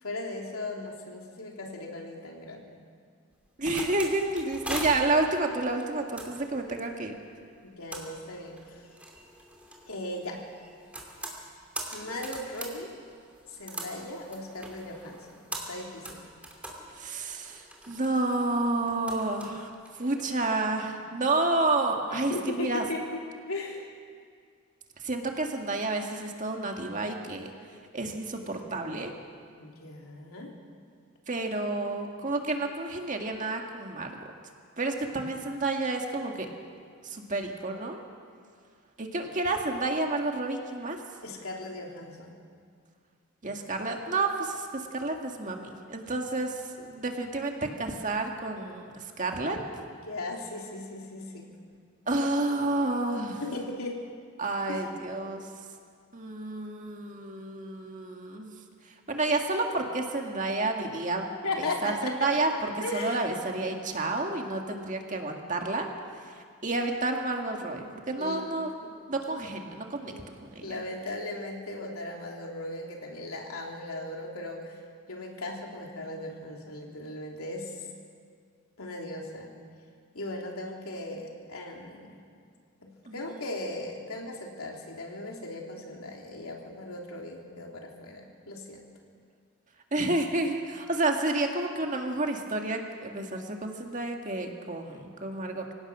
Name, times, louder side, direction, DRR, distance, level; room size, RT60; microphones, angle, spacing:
voice 1, 0.0-2.8 7.6-8.9 9.9-10.4 11.9-12.9 13.5-16.3 22.1-23.2 23.5-23.9 29.6-30.5 32.2-32.3 41.2-42.4 49.9-51.5 53.4-54.0 54.7-54.9 61.4-62.3 62.8-63.3 68.2-68.4 68.8-68.9 70.0-70.3 70.6-74.8 75.1-77.9 78.8-79.5 80.1-82.4 82.8-88.9, left 2 dB, 90° left, 0 dB, 3.1 m, -37 dB
sound 1, 3.3-20.6, right 1 dB, 5° right, 2.7 m, -42 dB
voice 2, 3.6-7.1 16.9-19.7 20.0-22.8 25.0-27.5 27.9-29.1 31.3-34.2 34.8-36.5 37.0-38.0 39.0-41.0 43.4-49.6 52.1-53.4 54.4-55.4 56.1-58.5 59.1-61.3 61.8-65.9 66.6-68.7 69.1-70.1 70.4-70.7 83.1-83.4 89.9-95.7, right 2 dB, 35° right, 2 dB, 1.9 m, -30 dB
25.5 x 17.0 x 6.2 m, 2.2 s
head